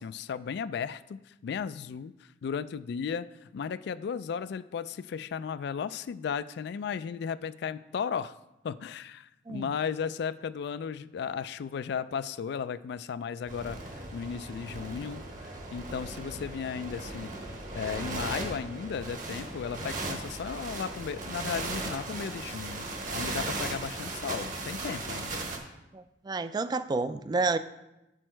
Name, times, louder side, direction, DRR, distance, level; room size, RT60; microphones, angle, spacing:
voice 1, 0.0-2.1 2.4-8.3 8.6-17.3 17.7-25.4, left 6 dB, 65° left, 15 dB, 0.3 m, -35 dB
sound 1, 13.5-25.6, right 2 dB, 45° right, 1.0 m, -37 dB
voice 2, 25.9-27.6, right 3 dB, 25° right, 12 dB, 0.3 m, -30 dB
7.4 x 6.2 x 4.5 m, 0.93 s
head